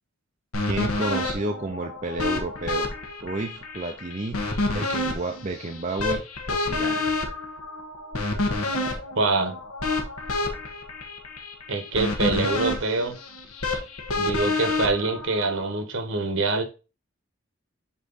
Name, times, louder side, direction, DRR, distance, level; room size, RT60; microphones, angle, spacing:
sound 1, 0.5-15.8, left 2 dB, 90° left, 1.5 m, -29 dB
voice 1, 0.7-2.9 3.2-4.4 4.7-6.2 6.5-7.0, right 2 dB, 35° right, 0.6 m, -31 dB
voice 2, 9.2-9.5 11.7-13.2 14.2-16.6, right 3 dB, 65° right, 1.3 m, -25 dB
8.3 x 3.1 x 3.9 m
head